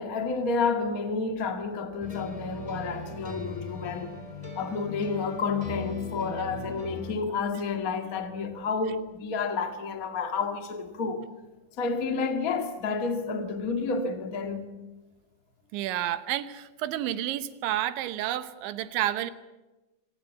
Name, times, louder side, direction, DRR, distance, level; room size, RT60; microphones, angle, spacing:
voice 1, 0.0-4.1 4.5-11.3 11.8-14.7, left 4 dB, 80° left, 0.7 m, -30 dB
sound 1, 2.0-7.2, left 2 dB, 10° left, 3.0 m, -39 dB
voice 2, 15.7-19.3, right 13 dB, 80° right, 3.3 m, -30 dB
26.0 x 19.0 x 8.4 m
omnidirectional pair, 5.4 m